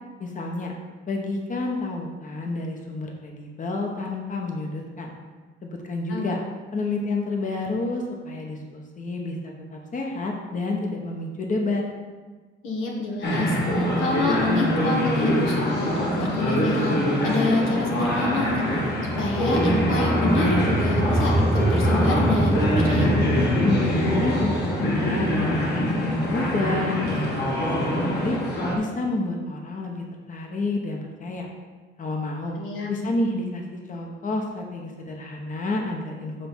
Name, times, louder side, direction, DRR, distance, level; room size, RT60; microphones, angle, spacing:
voice 1, 0.2-0.8 1.1-5.1 5.6-6.4 6.7-11.8 23.6-27.3 27.6-28.4 28.7-31.5 32.0-32.6 32.9-36.5, left 2 dB, 40° left, 1 dB, 1.1 m, -29 dB
voice 2, 12.6-23.1 32.5-33.0, left 2 dB, 90° left, -2 dB, 1.5 m, -27 dB
sound 1, 13.2-28.8, left 1 dB, 55° left, 1.9 m, -24 dB
sound 2, 18.1-28.3, right 1 dB, 15° right, 0.7 m, -27 dB
7.7 x 3.4 x 6.1 m, 1.4 s
cardioid pair, 90°, 20 cm